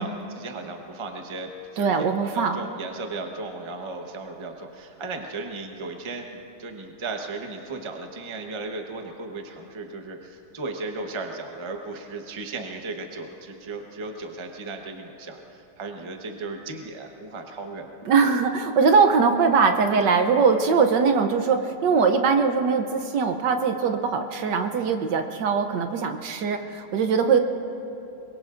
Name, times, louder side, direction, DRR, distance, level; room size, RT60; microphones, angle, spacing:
voice 1, 0.0-17.9, right 3 dB, 25° right, 3 dB, 0.7 m, -36 dB
voice 2, 1.8-2.6 18.1-27.4, right 5 dB, 65° right, 6 dB, 1.3 m, -21 dB
24.0 x 22.0 x 2.5 m, 2.8 s
omnidirectional pair, 2.2 m